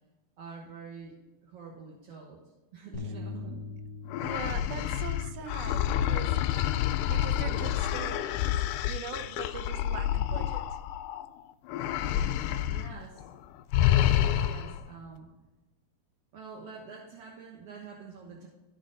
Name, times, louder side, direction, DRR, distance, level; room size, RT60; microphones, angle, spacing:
voice 1, 0.4-2.4 2.7-3.6 6.9-7.1 12.4-13.2 13.8-15.3 16.3-18.5, right 5 dB, 60° right, -2 dB, 1.7 m, -46 dB
sound 1, 2.9-9.2, left 4 dB, 70° left, 1.1 m, -45 dB
sound 2, 4.1-11.3 11.7-12.9 13.2-13.4 13.7-14.8, left 11 dB, 85° left, 1.8 m, -28 dB
voice 2, 4.2-6.6 7.1-8.5 8.9-10.8, right 7 dB, 80° right, 8 dB, 2.6 m, -42 dB
14.5 x 5.0 x 3.9 m, 1.1 s
omnidirectional pair, 4.2 m